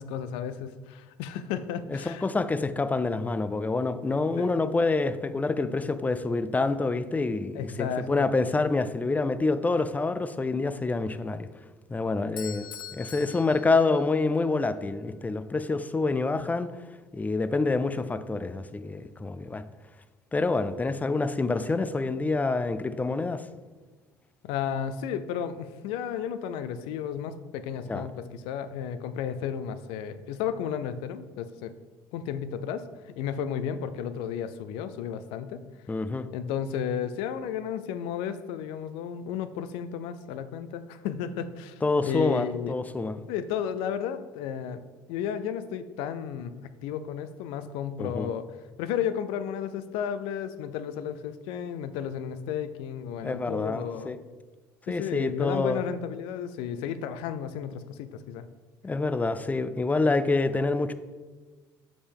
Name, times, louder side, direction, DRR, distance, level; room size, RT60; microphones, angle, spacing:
voice 1, 0.0-2.3 4.4-4.5 7.5-8.3 24.4-31.7 32.1-32.9 33.2-35.6 36.3-42.7 43.3-44.8 45.1-48.5 48.8-54.1 54.9-58.5, left 8 dB, 70° left, 12 dB, 0.5 m, -33 dB
voice 2, 1.9-11.5 11.9-12.7 12.9-16.7 17.1-19.6 20.3-23.4 27.9-28.1 35.9-36.3 41.8-43.2 48.0-48.3 53.2-54.2 54.9-55.8 58.8-60.9, left 3 dB, 15° left, 12 dB, 0.5 m, -27 dB
Bell / Doorbell, 12.4-14.4, left 8 dB, 50° left, 0.8 m, -43 dB
6.9 x 5.3 x 3.5 m, 1.3 s
hypercardioid pair, 65°, 10 cm